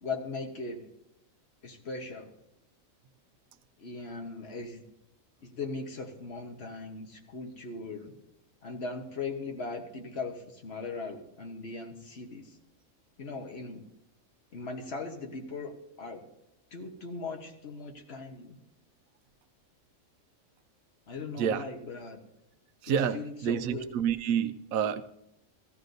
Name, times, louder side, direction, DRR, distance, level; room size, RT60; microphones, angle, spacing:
voice 1, 0.0-0.8 1.6-2.3 3.8-4.8 5.4-8.1 8.6-12.6 13.2-13.8 14.5-16.2 16.7-18.6 21.1-22.2 23.1-23.9, left 3 dB, 50° left, 3 dB, 1.3 m, -39 dB
voice 2, 22.8-25.0, right 8 dB, 85° right, 12 dB, 1.0 m, -29 dB
15.5 x 14.0 x 2.6 m, 0.81 s
omnidirectional pair, 1.4 m